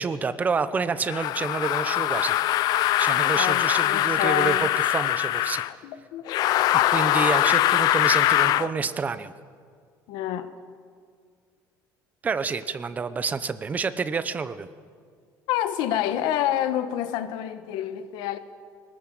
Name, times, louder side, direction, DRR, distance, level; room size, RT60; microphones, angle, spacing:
voice 1, 0.0-2.4 3.0-4.5 4.9-5.6 6.7-9.3 12.2-14.7, right 5 dB, 20° right, 12 dB, 0.8 m, -28 dB
sound 1, 1.1-5.7 6.3-8.7, left 14 dB, 60° left, 0.6 m, -22 dB
voice 2, 3.3-4.7 5.8-6.2 10.1-10.5 15.5-18.4, left 11 dB, 85° left, 10 dB, 1.3 m, -28 dB
20.5 x 19.5 x 7.8 m, 2.1 s
cardioid pair, 165°, 8 cm